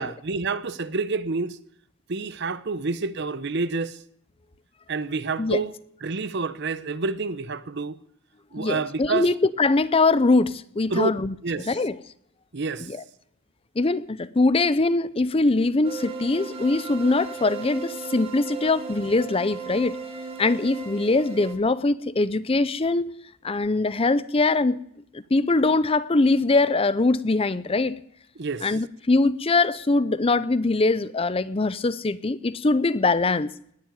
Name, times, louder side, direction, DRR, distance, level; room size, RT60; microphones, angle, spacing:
voice 1, 0.0-1.6 2.1-4.0 4.9-5.7 6.0-8.0 8.5-9.3 10.9-11.1 11.4-11.7 12.5-12.9 28.4-28.7, right 4 dB, 55° right, 0.8 m, -28 dB
voice 2, 8.6-11.3 11.7-12.0 12.8-13.0 13.8-20.0 20.4-23.1 23.4-24.8 25.1-28.0 28.6-33.5, left 3 dB, 25° left, 0.5 m, -22 dB
sound 1, 15.8-21.6, right 5 dB, 30° right, 2.1 m, -36 dB
19.5 x 7.6 x 9.2 m
head